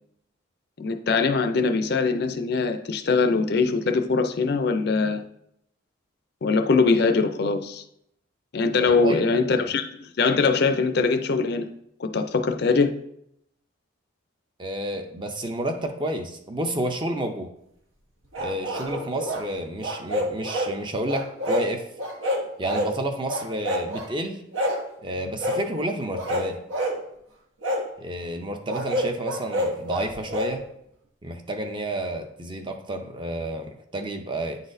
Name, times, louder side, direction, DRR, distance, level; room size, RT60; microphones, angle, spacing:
voice 1, 0.8-5.2 6.4-7.8 8.5-11.7 12.0-12.9, left 4 dB, 50° left, 7 dB, 0.4 m, -22 dB
voice 2, 8.9-9.2 9.6-9.7 14.6-17.5 18.4-21.9 22.6-24.4 25.0-26.6 28.0-30.6 31.2-34.6, right 1 dB, 25° right, 5 dB, 0.5 m, -30 dB
sound 1, 18.3-19.4 19.8-20.7 21.1-21.7 22.0-22.9 23.3-24.1 24.5-24.8 25.4-25.6 26.1-27.0 27.6-27.8 28.7-30.5, equal, 80° right, 1.1 m, -27 dB
9.4 x 4.0 x 2.6 m, 0.76 s
head